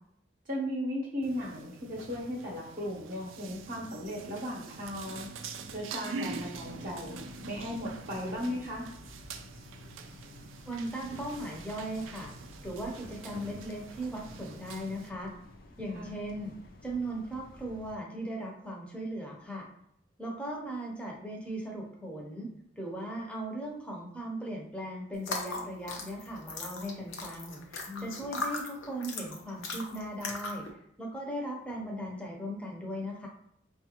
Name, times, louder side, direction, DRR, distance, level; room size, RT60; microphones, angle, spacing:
voice 1, 0.5-5.3 5.7-7.2 7.5-8.9 15.9-16.2 27.9-28.4, equal, 45° right, -3 dB, 0.8 m, -36 dB
sound 1, 1.2-15.1, right 4 dB, 90° right, 0.4 m, -45 dB
sound 2, 6.3-17.9, left 1 dB, 50° left, 0.5 m, -51 dB
voice 2, 10.7-12.3 12.6-15.3 15.8-16.5 16.8-19.7 20.2-22.5 22.8-30.7 31.0-33.3, right 1 dB, 5° left, -2 dB, 0.6 m, -38 dB
sound 3, 25.2-30.7, left 3 dB, 85° left, 0.7 m, -38 dB
5.0 x 2.4 x 2.8 m, 0.73 s
head